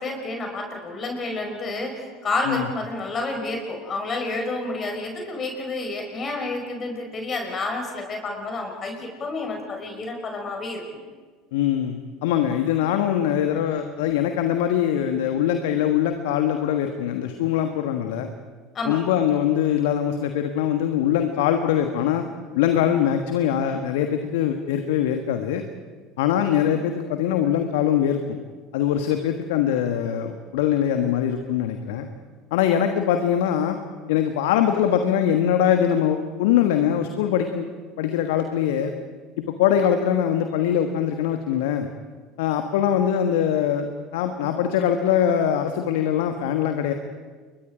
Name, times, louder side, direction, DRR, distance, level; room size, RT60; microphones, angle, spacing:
voice 1, 0.0-10.8 18.7-19.0, left 2 dB, 35° left, 3 dB, 5.2 m, -29 dB
voice 2, 11.5-18.3 18.8-22.2 22.5-25.6 26.2-28.4 28.7-32.1 32.5-33.8 34.1-37.7 38.0-38.9 39.5-41.9 42.4-46.9, left 9 dB, 70° left, 7 dB, 1.4 m, -22 dB
30.0 x 22.5 x 5.1 m, 1.5 s
figure-of-eight pair, 70°, 0 cm